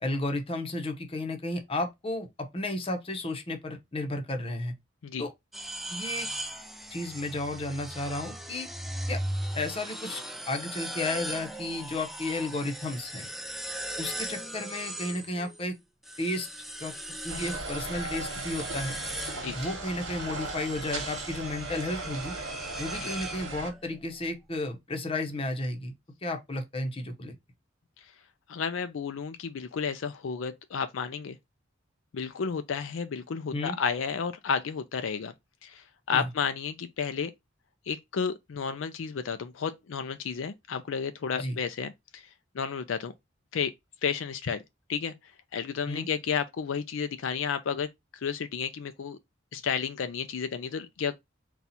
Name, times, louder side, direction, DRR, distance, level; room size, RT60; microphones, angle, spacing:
voice 1, 0.0-4.7 5.2-5.3 5.9-6.3 6.9-8.7 9.1-9.2 9.5-10.2 10.5-13.3 14.0-15.7 16.2-16.5 16.8-16.9 17.2-19.0 19.5-22.4 22.8-25.9 26.2-27.3 33.5-33.8 36.1-36.3 41.3-41.6 45.9-46.1, left 2 dB, 30° left, 0.8 m, -33 dB
sound 1, 5.5-15.7 16.0-23.9, right 1 dB, ahead, 0.3 m, -38 dB
sound 2, 17.3-23.7, right 3 dB, 85° right, 1.2 m, -37 dB
voice 2, 28.5-31.4 32.1-35.3 35.6-37.3 37.9-42.2 42.5-43.1 43.5-43.7 44.0-44.6 44.9-45.1 45.5-47.9 48.2-49.2 49.5-51.1, left 6 dB, 80° left, 0.4 m, -32 dB
4.1 x 2.4 x 4.1 m
head